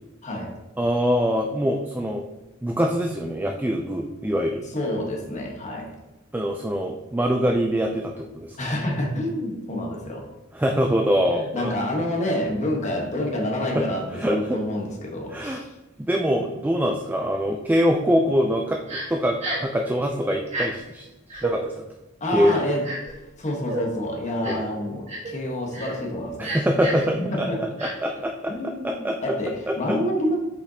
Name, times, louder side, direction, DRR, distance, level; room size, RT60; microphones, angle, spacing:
voice 1, 0.2-0.5 4.7-5.9 8.6-10.3 11.3-15.7 22.2-22.8 23.4-26.6 27.3-28.0 28.5-30.4, left 1 dB, 35° left, 0 dB, 1.2 m, -28 dB
voice 2, 0.8-2.3 2.6-4.7 6.3-8.6 10.5-11.7 13.7-13.8 14.1-14.6 15.3-15.6 16.0-21.8 22.3-22.6 24.5-24.6 26.4-29.4 29.7-30.0, equal, 10° right, 2 dB, 0.4 m, -24 dB
Crying sobbing, 18.9-19.1 19.4-19.7 20.5-20.7 21.3-21.5 22.4-23.1 23.7-23.8 24.4-24.7 25.1-25.3 25.7-25.9 26.4-27.1 27.8-27.9, right 2 dB, 35° right, 1.6 m, -30 dB
6.6 x 5.1 x 2.8 m, 1.1 s
head